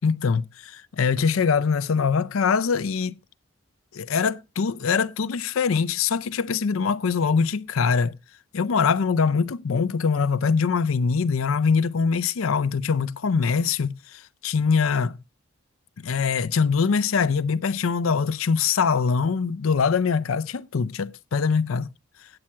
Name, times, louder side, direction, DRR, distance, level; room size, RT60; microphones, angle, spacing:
voice 1, 0.0-3.2 3.9-8.2 8.5-15.2 16.0-21.9, left 5 dB, 90° left, 0.5 m, -23 dB
8.8 x 8.7 x 4.3 m
head